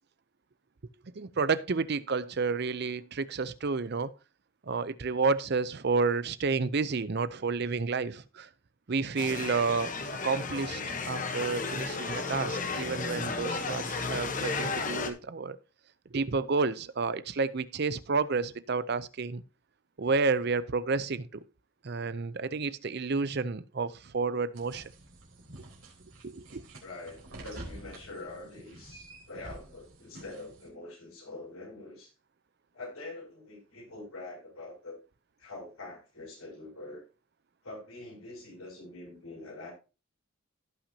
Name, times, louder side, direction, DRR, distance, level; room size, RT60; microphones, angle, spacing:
voice 1, 1.1-4.1 4.6-8.5 8.9-9.9 10.2-15.6 16.1-19.4 20.0-21.4 21.8-24.8 26.2-26.7, right 4 dB, 50° right, 0.5 m, -30 dB
sound 1, 9.2-15.1, left 4 dB, 35° left, 1.0 m, -34 dB
sound 2, 24.5-30.7, right 1 dB, 70° right, 3.9 m, -48 dB
voice 2, 26.8-32.1 32.7-35.0 35.4-37.0 37.6-39.7, left 2 dB, 80° left, 6.6 m, -44 dB
16.5 x 5.9 x 2.8 m
head